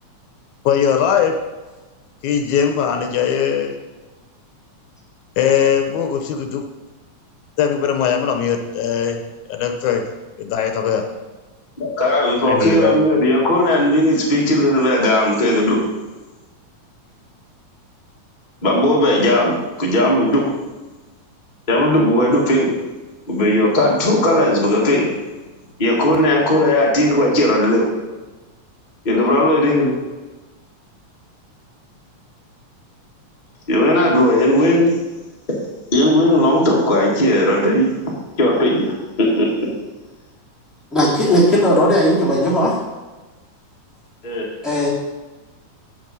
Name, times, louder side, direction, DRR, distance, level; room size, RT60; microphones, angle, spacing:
voice 1, 0.7-1.3 2.2-3.7 5.4-6.6 7.6-9.2 9.5-10.0 10.4-11.0 12.5-13.0, left 8 dB, 80° left, 5 dB, 2.1 m, -19 dB
voice 2, 11.8-15.8 18.6-20.4 21.7-22.7 23.3-25.0 25.8-27.8 29.0-29.9 33.7-34.9 35.9-37.9 38.4-38.8 39.2-39.5 44.2-44.4, left 1 dB, 25° left, -3 dB, 1.2 m, -16 dB
voice 3, 40.9-42.8 44.6-44.9, equal, ahead, -6 dB, 1.9 m, -16 dB
8.6 x 6.0 x 5.3 m, 1.2 s
omnidirectional pair, 3.5 m